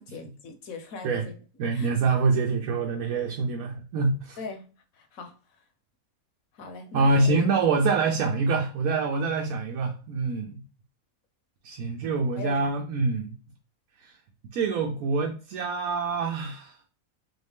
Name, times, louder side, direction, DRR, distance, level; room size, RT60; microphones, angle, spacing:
voice 1, 0.0-1.3 1.7-1.9 4.4-4.6 4.9-5.3 6.5-7.4 9.1-9.2 12.4-12.7, left 4 dB, 70° left, 6 dB, 1.3 m, -40 dB
voice 2, 1.6-4.4 6.9-10.6 11.6-13.3 14.0-14.2 14.5-16.8, right 3 dB, 75° right, 1 dB, 1.1 m, -25 dB
3.9 x 2.7 x 3.4 m, 0.36 s
omnidirectional pair, 1.5 m